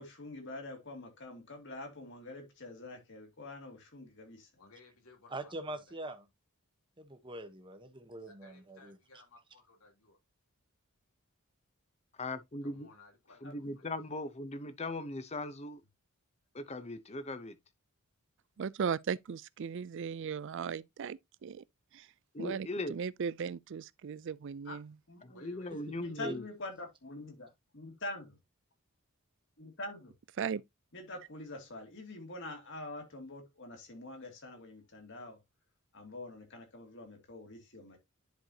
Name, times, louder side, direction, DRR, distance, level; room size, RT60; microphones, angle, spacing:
voice 1, 0.0-4.5 13.4-13.5 24.6-24.8 25.1-25.4 26.0-28.4 29.6-30.1 30.9-35.4 35.9-38.0, left 2 dB, 55° left, 2.6 m, -45 dB
voice 2, 4.6-6.0 8.3-10.2 12.6-13.9 25.2-26.3, left 3 dB, 80° left, 3.3 m, -60 dB
voice 3, 5.3-6.2 7.0-9.0 25.7-26.4, right 2 dB, 20° right, 1.1 m, -43 dB
voice 4, 12.2-12.9 13.4-15.8 16.5-17.6 22.3-23.0 25.2-26.5, left 2 dB, 30° left, 0.8 m, -39 dB
voice 5, 18.6-21.6 21.9-22.1 22.4-24.9 30.4-30.6, right 6 dB, 55° right, 0.4 m, -37 dB
10.5 x 4.6 x 2.8 m
head